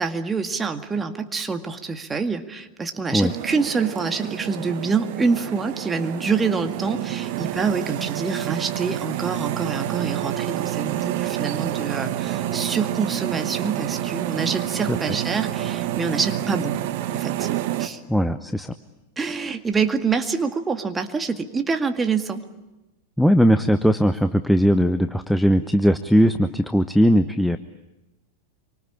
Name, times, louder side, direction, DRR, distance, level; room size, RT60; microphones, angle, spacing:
voice 1, 0.0-16.8 17.1-17.5 17.8-18.0 19.2-22.5, right 5 dB, 15° right, 6 dB, 2.0 m, -26 dB
sound 1, 3.2-17.9, right 13 dB, 50° right, 1.5 m, -28 dB
voice 2, 18.1-18.7 23.2-27.6, equal, ahead, 10 dB, 0.9 m, -19 dB
27.0 x 24.5 x 8.9 m, 1.0 s
figure-of-eight pair, 90°, 0 cm